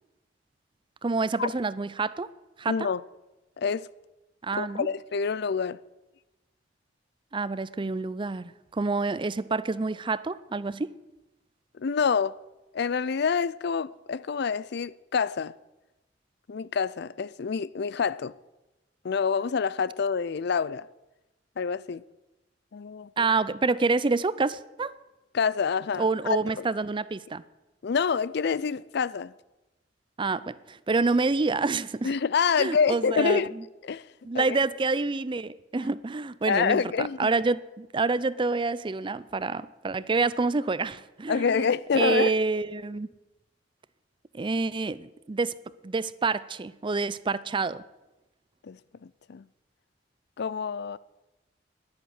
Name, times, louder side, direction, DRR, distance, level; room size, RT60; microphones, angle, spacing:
voice 1, 1.0-2.3 2.6-2.9 4.4-4.9 7.3-11.0 23.2-24.9 26.0-27.4 30.2-32.1 32.6-33.6 34.2-41.7 41.9-43.1 44.3-45.5 45.8-47.8, right 3 dB, 25° right, 0.5 m, -27 dB
voice 2, 2.7-3.0 3.6-3.9 4.6-5.8 11.8-12.4 12.7-15.5 16.5-18.3 19.0-20.9 21.6-22.0 22.7-23.3 25.3-26.7 27.8-29.3 32.0-33.5 33.8-34.0 34.3-34.6 36.5-37.3 41.3-42.3 48.6-49.4 50.4-51.0, left 6 dB, 60° left, 0.5 m, -27 dB
11.5 x 10.5 x 9.6 m
head